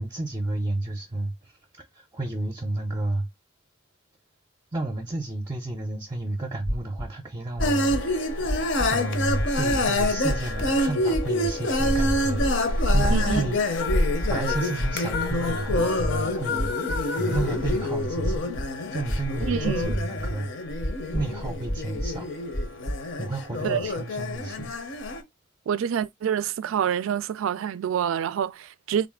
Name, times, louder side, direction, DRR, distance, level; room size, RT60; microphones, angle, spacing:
voice 1, 0.0-3.3 4.7-8.6 8.9-18.5 18.9-20.5 21.1-22.3 23.2-24.7, right 2 dB, 20° right, 0.5 m, -32 dB
sound 1, 6.6-7.1 7.6-8.0 8.5-9.0 9.4-9.8 10.3-10.7 11.1-11.5 12.1-12.5 13.0-13.5 13.9-14.3 14.8-15.3 15.7-16.1 16.6-17.8 18.2-18.7 19.1-19.6 19.9-20.4 20.8-21.2 21.7-22.2 22.5-23.0, equal, 30° left, 0.6 m, -29 dB
sound 2, 7.6-25.2, left 1 dB, 60° left, 0.7 m, -26 dB
voice 2, 13.1-13.5 19.4-19.9 23.6-23.8 25.7-29.1, right 8 dB, 75° right, 0.3 m, -27 dB
sound 3, 13.7-18.5, left 5 dB, 80° left, 1.0 m, -34 dB
3.7 x 2.4 x 3.5 m
head